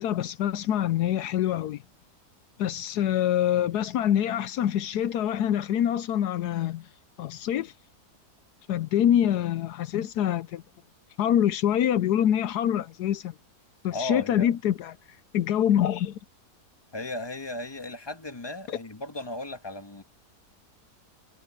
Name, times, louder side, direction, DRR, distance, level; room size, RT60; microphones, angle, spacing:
voice 1, 0.0-1.8 2.6-6.9 7.2-7.7 8.7-10.6 11.2-13.3 13.8-14.9 15.3-16.2 18.7-18.8, left 10 dB, 80° left, 1.2 m, -25 dB
voice 2, 13.9-14.5 16.9-20.0, left 2 dB, 15° left, 1.6 m, -36 dB
omnidirectional pair, 1.7 m